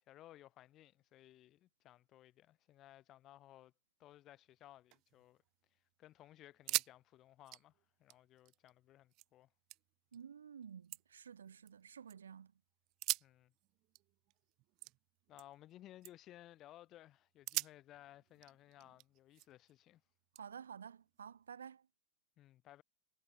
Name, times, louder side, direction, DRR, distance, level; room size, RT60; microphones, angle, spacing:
voice 1, 0.1-3.7 4.0-5.4 6.0-7.7 8.0-9.5 13.2-13.5 15.3-20.0 22.4-22.8, left 14 dB, 40° left, 2.3 m, -59 dB
sound 1, 4.7-5.7 6.0-6.1 6.5-7.0 7.3-9.3 9.7-10.2 10.6-12.2 12.9-15.7 16.0-16.4 16.9-17.0 17.5-19.7 20.4-21.5, right 21 dB, 45° right, 0.8 m, -44 dB
voice 2, 10.1-12.5 20.4-21.9, right 7 dB, 80° right, 0.9 m, -52 dB
hypercardioid pair, 95°, 0 cm